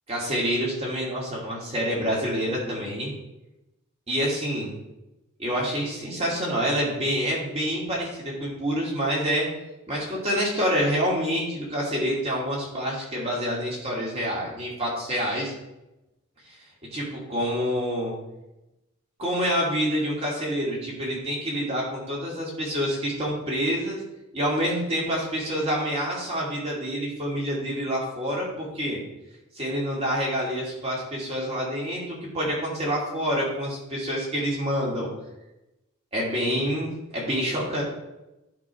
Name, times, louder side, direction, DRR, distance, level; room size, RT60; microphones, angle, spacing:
voice 1, 0.1-3.1 4.1-4.7 5.4-9.5 9.9-15.5 16.5-16.6 16.9-18.1 19.2-24.0 24.3-29.0 29.5-35.1 36.1-37.8, equal, 30° right, -4 dB, 2.5 m, -27 dB
10.5 x 3.8 x 4.8 m, 0.95 s
head